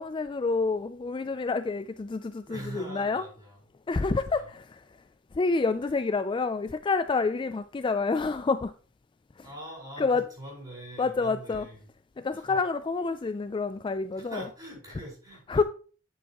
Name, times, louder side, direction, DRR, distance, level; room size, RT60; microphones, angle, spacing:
voice 1, 0.0-3.3 3.9-4.8 5.3-8.7 9.4-9.5 10.0-10.2 11.0-11.7 12.2-14.4 15.5-15.6, left 4 dB, 25° left, 0.3 m, -28 dB
voice 2, 2.5-3.6 4.1-4.5 5.8-6.0 9.4-11.9 12.3-12.6 14.1-15.6, right 1 dB, 20° right, 4.9 m, -43 dB
8.6 x 8.1 x 3.0 m
head